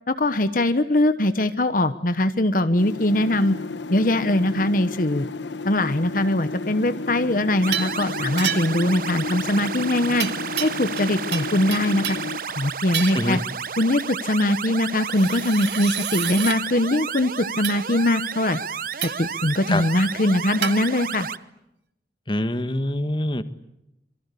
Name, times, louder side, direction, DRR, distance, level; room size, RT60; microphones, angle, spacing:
voice 1, 0.1-3.6 3.9-5.3 5.7-10.3 10.6-12.2 12.5-13.4 13.8-18.6 19.0-21.3, left 1 dB, 50° left, 11 dB, 1.2 m, -22 dB
sound 1, 2.8-12.4, left 3 dB, 85° left, 1.2 m, -33 dB
sound 2, 7.6-21.4, right 7 dB, 50° right, 0.9 m, -32 dB
sound 3, 7.7-8.0 8.4-8.9 10.2-11.1 11.3-12.3 12.9-13.3 15.0-16.6 17.6-17.8 19.0-19.3 20.6-20.8, right 9 dB, 75° right, 2.3 m, -29 dB
voice 2, 22.3-23.4, left 1 dB, 25° left, 11 dB, 1.5 m, -24 dB
27.0 x 24.0 x 8.4 m, 0.84 s
head